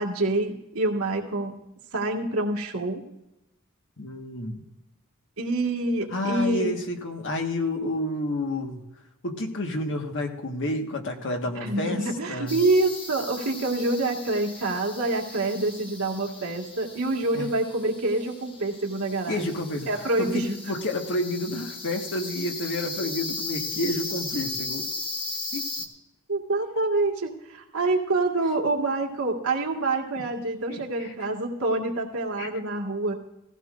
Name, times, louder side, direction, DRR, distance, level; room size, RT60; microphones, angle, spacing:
voice 1, 0.0-1.6 1.9-3.1 5.4-6.7 11.6-19.6 19.9-20.5 26.3-33.1, right 2 dB, 75° right, 0 dB, 1.9 m, -26 dB
voice 2, 4.0-4.7 6.1-8.8 9.2-12.5 17.3-17.5 19.3-24.9 25.5-25.7 30.2-30.3 30.7-31.1 32.4-32.5, left 1 dB, 60° left, 3 dB, 1.5 m, -30 dB
sound 1, 12.5-25.9, left 3 dB, 25° left, 1.3 m, -37 dB
17.0 x 15.0 x 2.5 m, 0.90 s
head